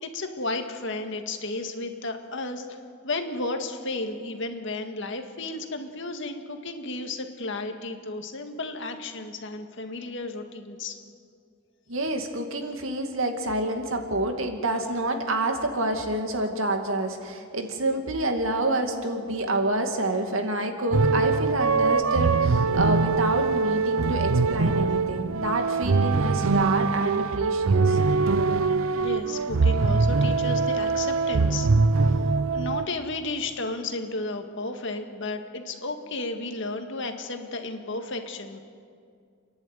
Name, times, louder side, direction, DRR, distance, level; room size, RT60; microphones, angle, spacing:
voice 1, 0.0-2.8 3.0-11.0 16.4-16.5 29.0-31.7 32.0-32.2 32.5-38.6, left 2 dB, 60° left, 5 dB, 1.9 m, -33 dB
voice 2, 11.9-28.0, right 2 dB, 75° right, 5 dB, 2.3 m, -28 dB
sound 1, 20.9-32.9, right 4 dB, 90° right, 0.6 m, -23 dB
30.0 x 11.0 x 9.2 m, 2.3 s
head